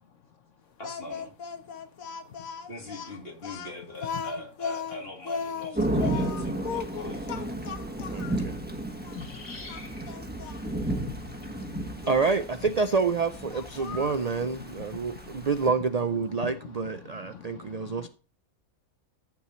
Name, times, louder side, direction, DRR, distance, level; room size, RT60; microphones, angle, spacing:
Speech, 0.8-8.4 9.0-9.2 9.7-10.6 12.0-12.4 13.5-14.3, left 6 dB, 80° left, 1.5 m, -37 dB
voice 1, 0.8-1.3 2.7-7.5, left 1 dB, 45° left, 3.2 m, -42 dB
Thunder / Rain, 5.7-15.7, right 1 dB, 5° right, 1.3 m, -33 dB
voice 2, 8.1-8.6 12.1-18.1, right 4 dB, 55° right, 0.4 m, -28 dB
voice 3, 9.1-10.0 10.4-10.5 11.0-11.6 11.9-12.0 17.3-18.0, left 6 dB, 65° left, 1.2 m, -43 dB
14.0 x 7.0 x 3.1 m
omnidirectional pair, 1.4 m